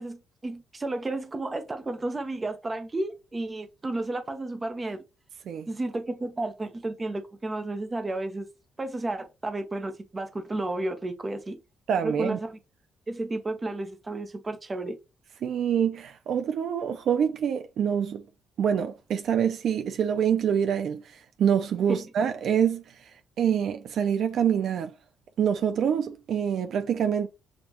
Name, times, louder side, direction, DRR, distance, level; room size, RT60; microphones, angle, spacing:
voice 1, 0.0-5.0 5.7-8.5 8.8-11.6 12.0-12.6 13.1-15.0 21.9-22.0, right 2 dB, 20° right, 0.8 m, -32 dB
voice 2, 11.9-12.4 15.4-18.2 18.6-23.1 23.4-24.9 25.4-27.3, right 8 dB, 65° right, 0.5 m, -26 dB
7.2 x 2.4 x 2.9 m
cardioid pair, 110°, 0 cm